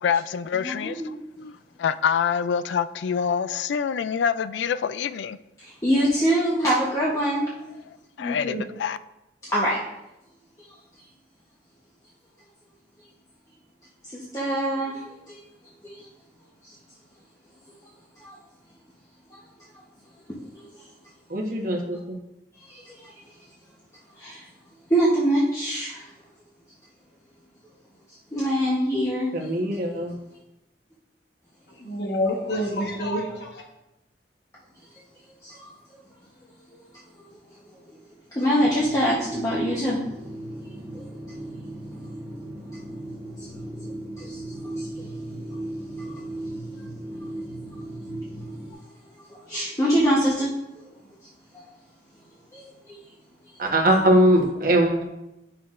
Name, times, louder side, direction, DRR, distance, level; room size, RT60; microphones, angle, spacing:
voice 1, 0.0-5.4 8.2-9.0, left 7 dB, 85° left, 0.3 m, -26 dB
voice 2, 0.6-1.2 5.6-7.4 9.4-9.8 14.1-15.4 15.8-16.0 16.6-16.7 18.2-18.3 22.7-23.1 24.2-24.4 24.9-26.0 28.3-29.5 35.4-35.7 38.3-40.0 40.9-41.0 43.4-43.5 44.2-44.4 44.8-44.9 46.0-46.2 49.3-50.5 52.5-53.0, equal, 20° left, 0.9 m, -24 dB
voice 3, 8.2-8.6 31.8-33.6, left 1 dB, 65° left, 1.4 m, -28 dB
voice 4, 21.3-22.2 29.3-30.1 53.6-55.1, right 1 dB, 50° right, 1.1 m, -21 dB
sound 1, 38.6-48.7, right 1 dB, 20° right, 1.4 m, -37 dB
9.2 x 5.9 x 2.5 m
head